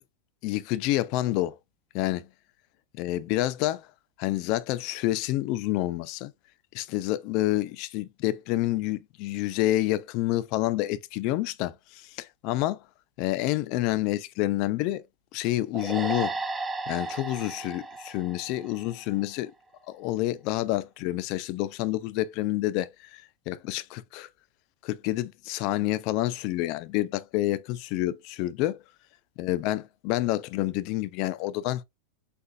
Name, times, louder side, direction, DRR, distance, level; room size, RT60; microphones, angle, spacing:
voice 1, 0.4-1.6 1.9-2.3 3.0-3.9 4.2-6.3 6.7-12.8 13.2-15.0 15.3-16.3 16.9-19.5 19.9-24.3 24.8-28.8 29.4-31.8, left 16 dB, 45° left, 0.5 m, -28 dB
sound 1, 15.7-19.2, right 3 dB, 10° right, 0.5 m, -34 dB
6.6 x 2.4 x 2.4 m
supercardioid pair, 150°, 0 cm